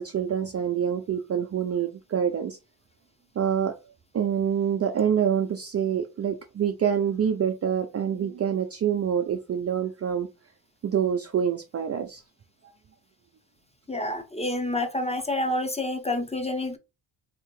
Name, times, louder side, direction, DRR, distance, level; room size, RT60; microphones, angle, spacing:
voice 1, 0.0-2.6 3.4-3.7 4.1-10.3 10.8-12.2, right 8 dB, 30° right, 0.5 m, -26 dB
voice 2, 13.9-16.8, left 1 dB, 15° left, 0.8 m, -28 dB
3.2 x 2.8 x 3.0 m
supercardioid pair, 75°, 49 cm